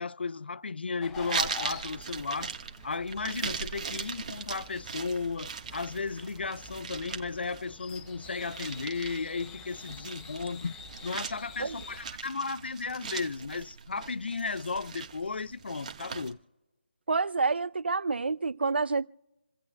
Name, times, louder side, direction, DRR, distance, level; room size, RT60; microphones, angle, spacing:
voice 1, 0.0-2.6 2.8-10.7 11.0-16.4, left 4 dB, 75° left, 0.5 m, -34 dB
sound 1, 1.0-12.1, left 6 dB, 10° left, 0.6 m, -48 dB
sound 2, 1.1-16.3, right 6 dB, 40° right, 1.4 m, -40 dB
voice 2, 17.1-19.1, right 4 dB, 75° right, 0.5 m, -28 dB
28.0 x 15.5 x 2.3 m
figure-of-eight pair, 160°, 6 cm